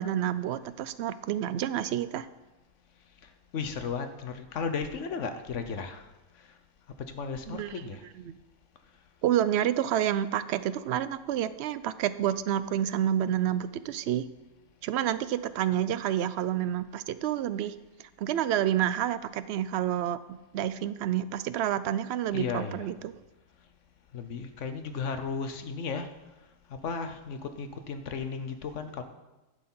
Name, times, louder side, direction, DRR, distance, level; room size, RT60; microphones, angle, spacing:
voice 1, 0.0-2.3 7.5-7.7 8.2-8.4 9.2-14.3 14.8-17.7 18.2-20.2 20.5-23.1, right 11 dB, 65° right, 14 dB, 0.7 m, -29 dB
voice 2, 3.5-6.0 7.1-8.0 22.3-22.9 24.1-26.1 26.8-29.0, left 5 dB, 70° left, 8 dB, 1.2 m, -34 dB
11.5 x 6.7 x 5.5 m, 1.1 s
omnidirectional pair, 1.4 m